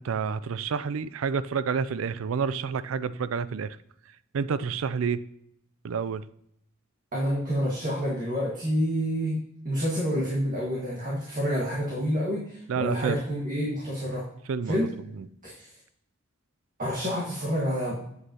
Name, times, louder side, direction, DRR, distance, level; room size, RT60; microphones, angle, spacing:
voice 1, 0.0-3.8 4.3-5.2 5.8-6.2 12.7-13.2 14.5-14.9 15.2-15.3, right 6 dB, 90° right, 16 dB, 0.4 m, -29 dB
voice 2, 7.1-9.4 9.6-14.2 14.6-14.9 15.4-15.7 16.8-18.0, equal, 40° right, -5 dB, 1.7 m, -28 dB
8.2 x 7.8 x 2.9 m, 0.74 s
head